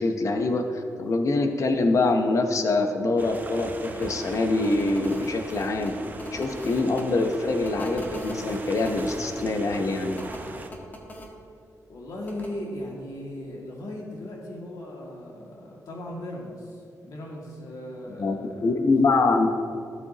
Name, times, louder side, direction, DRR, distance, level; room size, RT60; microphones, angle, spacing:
voice 1, 0.0-5.9 6.3-10.2 18.2-18.4 18.6-19.5, left 3 dB, 55° left, 5 dB, 0.9 m, -24 dB
sound 1, 3.2-10.7, right 2 dB, 30° right, 0.7 m, -40 dB
sound 2, 4.0-4.1 4.6-7.0 7.6-9.2 10.1-11.3 12.3-12.5, left 1 dB, 30° left, 1.4 m, -40 dB
voice 2, 11.9-18.7, left 1 dB, 75° left, -3 dB, 2.1 m, -37 dB
13.5 x 7.6 x 2.9 m, 2.5 s
wide cardioid pair, 120°, 6 cm